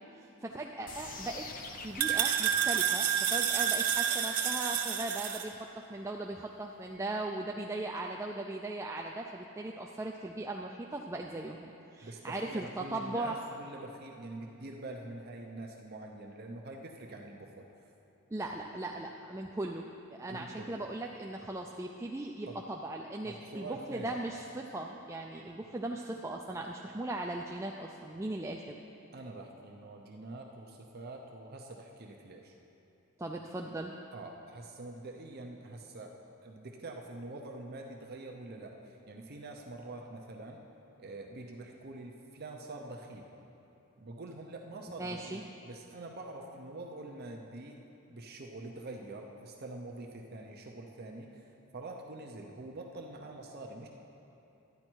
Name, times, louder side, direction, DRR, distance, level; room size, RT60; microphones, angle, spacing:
voice 1, 0.1-1.4 1.8-5.6 5.9-13.4 18.3-28.8 33.2-33.9 45.0-45.4, right 2 dB, 15° right, 0 dB, 0.3 m, -38 dB
sound 1, 0.9-6.9, left 4 dB, 40° left, 0.6 m, -47 dB
sound 2, 0.9-5.4, right 9 dB, 90° right, 0.9 m, -30 dB
voice 2, 12.0-17.7 20.3-20.9 22.5-22.6 23.2-24.2 29.1-32.5 34.1-40.6 41.0-43.3 44.0-47.8 48.1-51.4 51.7-53.9, right 2 dB, 45° right, 1 dB, 0.7 m, -45 dB
12.0 x 9.7 x 4.6 m, 2.9 s
head